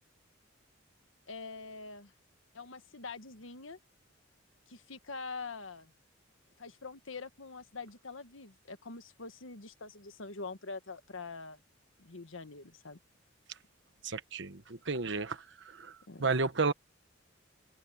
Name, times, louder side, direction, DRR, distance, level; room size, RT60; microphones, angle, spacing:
voice 1, 1.3-2.1 2.5-3.8 4.7-5.9 6.6-11.6 12.0-13.0 16.1-16.3, left 4 dB, 80° left, 1.4 m, -44 dB
voice 2, 14.0-15.4 15.7-15.9 16.2-16.7, right 4 dB, 65° right, 1.2 m, -32 dB
open air
head